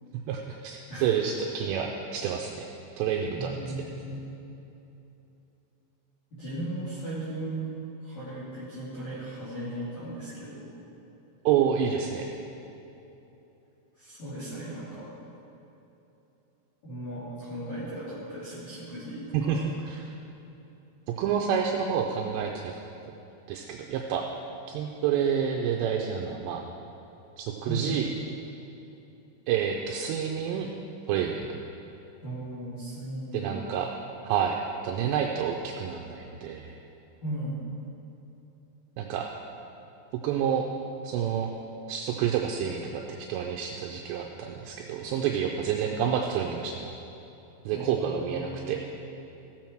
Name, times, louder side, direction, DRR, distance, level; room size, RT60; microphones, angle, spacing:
voice 1, 0.3-2.6 3.0-3.5 11.5-12.3 19.3-20.1 21.2-22.7 23.5-24.2 24.7-26.6 27.4-28.1 29.5-30.7 31.1-31.5 33.3-33.9 34.2-34.6 34.8-36.8 39.0-39.3 40.2-40.7 41.0-41.5 41.9-46.9 47.7-48.8, right 8 dB, 85° right, 1 dB, 2.5 m, -28 dB
voice 2, 3.3-4.3 6.3-7.6 8.0-10.8 13.9-15.0 16.8-19.6 27.6-28.0 32.2-33.6 37.2-37.6 47.7-48.8, right 1 dB, 45° left, -11 dB, 3.5 m, -37 dB
16.0 x 7.3 x 4.5 m, 3.0 s
omnidirectional pair, 5.5 m